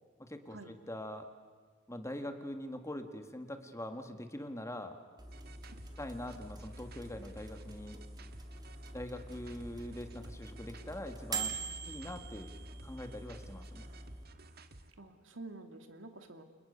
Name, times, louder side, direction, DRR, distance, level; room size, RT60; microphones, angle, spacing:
voice 1, 0.2-1.3 1.9-5.0 6.0-8.0 8.9-11.6 11.9-12.5 12.8-13.8, left 1 dB, 15° left, 6 dB, 2.1 m, -43 dB
sound 1, 5.2-14.2, right 4 dB, 20° right, 2.6 m, -45 dB
sound 2, 5.3-14.9, right 2 dB, 50° right, 1.6 m, -56 dB
voice 2, 15.0-16.4, right 2 dB, 70° right, 6 dB, 2.7 m, -48 dB
29.5 x 29.5 x 6.8 m, 1.5 s
head